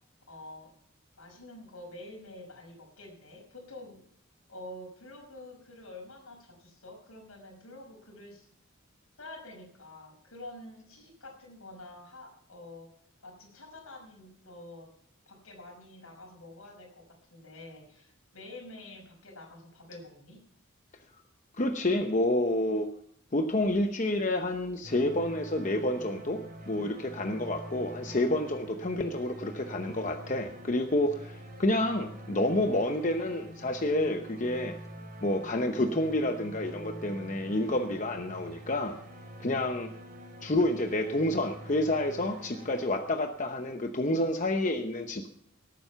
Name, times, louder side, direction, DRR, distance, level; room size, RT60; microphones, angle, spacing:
voice 1, 0.3-0.7 1.2-4.0 4.5-8.5 9.2-12.9 13.2-14.9 15.3-17.0 17.3-20.4, left 1 dB, 80° left, 2 dB, 5.4 m, -47 dB
voice 2, 21.6-22.9 23.3-34.8 35.2-39.0 39.4-39.9 40.4-45.3, left 1 dB, 35° left, 6 dB, 0.8 m, -29 dB
sound 1, 24.8-43.7, right 1 dB, 40° right, 3.4 m, -46 dB
18.0 x 9.0 x 5.8 m, 0.66 s
head